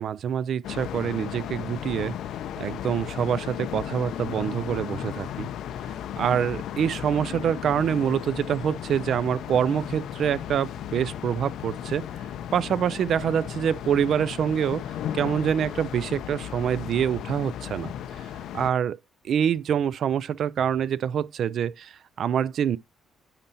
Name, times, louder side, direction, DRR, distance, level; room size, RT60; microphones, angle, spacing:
voice 1, 0.0-2.1 2.6-5.5 6.2-12.1 12.5-14.8 15.1-17.9 18.5-19.0 19.2-22.8, right 8 dB, 65° right, 0.3 m, -26 dB
sound 1, 0.6-18.7, left 10 dB, 80° left, 0.5 m, -35 dB
8.8 x 4.2 x 2.8 m
cardioid pair, 90°, 0 cm